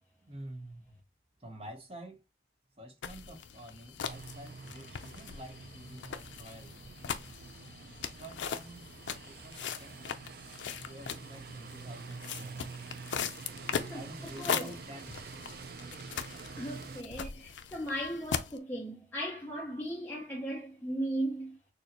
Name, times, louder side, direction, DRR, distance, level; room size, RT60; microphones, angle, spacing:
voice 1, 0.3-1.0 1.4-2.2 2.8-6.8 8.1-8.9 9.2-10.3 10.8-12.6 13.9-15.2, right 1 dB, 30° right, 0.9 m, -48 dB
sound 1, 3.0-18.6, left 7 dB, 80° left, 0.5 m, -40 dB
sound 2, 4.0-17.0, right 4 dB, 55° right, 0.4 m, -47 dB
voice 2, 13.7-14.0 14.4-14.7 16.6-21.6, right 1 dB, 10° left, 0.8 m, -37 dB
6.5 x 2.2 x 2.9 m
head